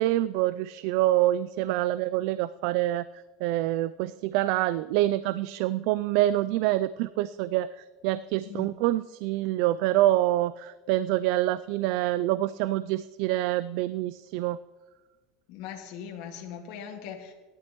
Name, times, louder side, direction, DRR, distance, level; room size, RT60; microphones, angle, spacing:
voice 1, 0.0-3.0 3.4-14.6, right 15 dB, 70° right, 16 dB, 0.3 m, -26 dB
voice 2, 15.5-17.3, left 8 dB, 65° left, 2 dB, 1.9 m, -40 dB
17.5 x 11.5 x 3.0 m, 1.3 s
supercardioid pair, 130°, 0 cm